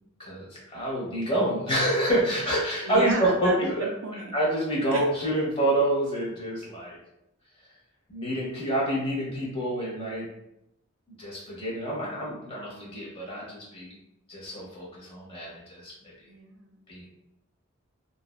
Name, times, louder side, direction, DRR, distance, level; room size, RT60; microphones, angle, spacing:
voice 1, 0.2-3.9 4.3-7.0 8.1-10.3 11.2-13.9 14.3-15.9 16.9-17.2, right 1 dB, 25° left, -5 dB, 0.8 m, -27 dB
voice 2, 2.8-4.3 4.9-5.0 16.3-16.9, right 4 dB, 80° right, 2 dB, 0.5 m, -31 dB
2.6 x 2.2 x 2.3 m, 0.84 s
head